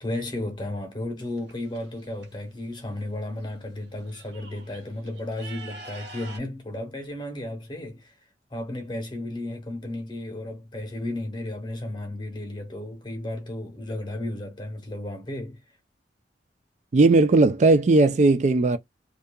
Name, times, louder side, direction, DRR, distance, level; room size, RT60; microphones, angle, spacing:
voice 1, 0.0-8.2 8.5-15.6, left 1 dB, 25° left, 0.9 m, -34 dB
sound 1, 1.2-2.3 3.4-3.5 3.8-6.4, right 3 dB, 70° right, 1.2 m, -45 dB
voice 2, 16.9-18.8, right 3 dB, 40° right, 0.3 m, -17 dB
2.7 x 2.4 x 2.2 m
head